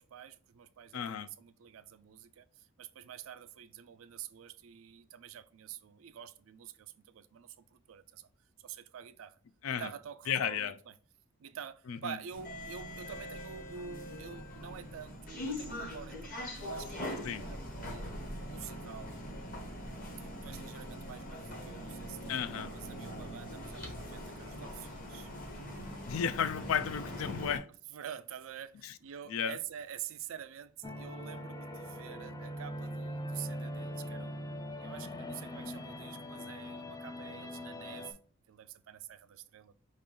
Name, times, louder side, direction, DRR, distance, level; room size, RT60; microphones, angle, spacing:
voice 1, 0.0-8.3 8.6-9.4 9.8-10.9 11.4-18.1 18.4-19.2 20.2-25.3 27.9-38.2 38.5-39.7, right 8 dB, 70° right, 0.4 m, -48 dB
voice 2, 0.9-1.3 9.6-9.9 10.3-10.7 11.9-12.2 17.2-17.4 22.3-22.7 26.1-27.7 28.8-28.9 29.3-29.6, left 7 dB, 80° left, 0.4 m, -33 dB
sound 1, 12.3-27.6, left 1 dB, 40° left, 1.1 m, -42 dB
sound 2, 30.8-38.1, equal, 20° left, 0.4 m, -41 dB
5.3 x 2.5 x 3.7 m
head